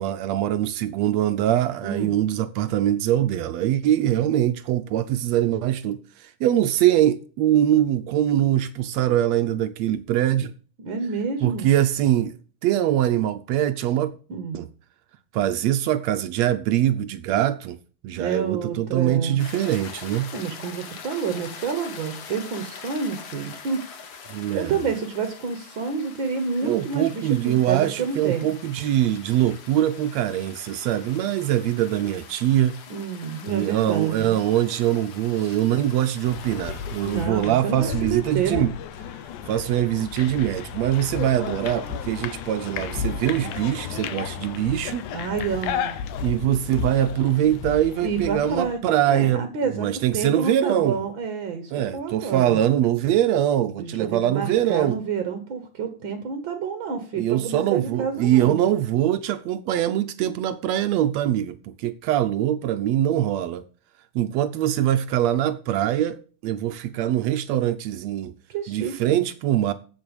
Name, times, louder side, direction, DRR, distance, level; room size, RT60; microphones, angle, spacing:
voice 1, 0.0-10.5 11.4-12.4 12.6-14.1 14.5-14.7 15.3-17.8 18.0-20.3 24.3-24.8 26.6-32.8 33.5-38.7 39.5-45.0 46.2-49.5 49.7-51.0 51.7-55.0 57.2-63.6 64.2-66.2 66.4-68.3 68.7-69.7, right 12 dB, 75° right, 1.7 m, -23 dB
voice 2, 1.8-2.1 10.8-11.7 14.3-14.6 18.2-19.4 20.3-23.8 24.5-28.5 32.9-34.3 35.4-35.6 37.1-38.7 45.1-45.9 48.0-48.8 49.1-49.9 50.1-52.6 53.8-58.5 68.5-69.2, right 6 dB, 55° right, 1.5 m, -29 dB
sound 1, 19.4-37.3, left 6 dB, 60° left, 2.4 m, -43 dB
sound 2, 36.2-48.8, left 8 dB, 80° left, 2.4 m, -33 dB
8.2 x 7.6 x 7.0 m
omnidirectional pair, 3.5 m